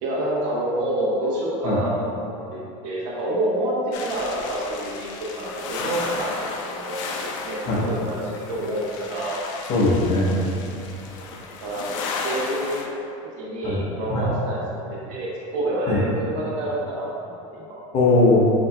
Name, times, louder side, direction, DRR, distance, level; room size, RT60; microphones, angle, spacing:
voice 1, 0.0-2.2 2.5-3.7 4.0-6.3 6.7-7.0 7.5-9.4 11.2-12.0 12.2-12.9 13.4-17.8, right 1 dB, 80° right, -6 dB, 1.1 m, -28 dB
sound 1, 3.9-12.9, left 4 dB, 80° left, 0.5 m, -34 dB
voice 2, 9.7-10.4 13.6-13.8 14.1-14.3 15.9-16.0 17.9-18.5, left 2 dB, 45° left, -4 dB, 1.0 m, -19 dB
7.0 x 2.9 x 2.3 m, 2.7 s
supercardioid pair, 135°, 17 cm